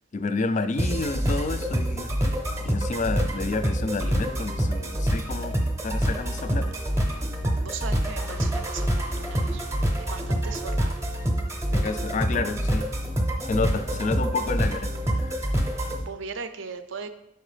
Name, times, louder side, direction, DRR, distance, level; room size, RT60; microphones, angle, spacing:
voice 1, 0.1-2.1 2.6-5.5 5.8-6.7 11.7-12.9 13.5-14.9 15.2-15.4, left 3 dB, 35° left, 11 dB, 0.3 m, -29 dB
sound 1, 0.8-16.0, equal, 15° right, 0.6 m, -26 dB
voice 2, 7.6-9.7 10.0-11.0 15.7-17.1, right 5 dB, 60° right, 9 dB, 0.5 m, -38 dB
5.3 x 4.4 x 4.9 m, 0.81 s
head